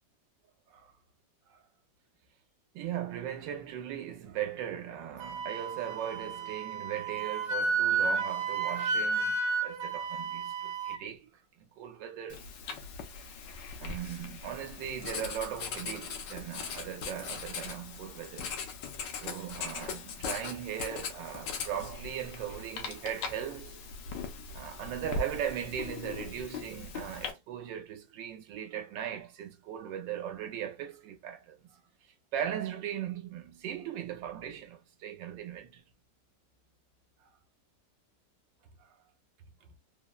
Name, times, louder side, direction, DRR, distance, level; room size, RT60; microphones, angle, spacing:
voice 1, 2.7-12.5 13.8-18.5 19.1-23.8 24.2-24.3 24.5-31.8 32.3-35.8 38.8-39.0, right 10 dB, 90° right, 1.4 m, -38 dB
Wind instrument woodwind instrument, 5.2-11.0, right 4 dB, 70° right, 1.1 m, -32 dB
Writing, 12.3-27.3, left 5 dB, 80° left, 1.3 m, -40 dB
3.5 x 2.1 x 2.2 m
omnidirectional pair, 1.9 m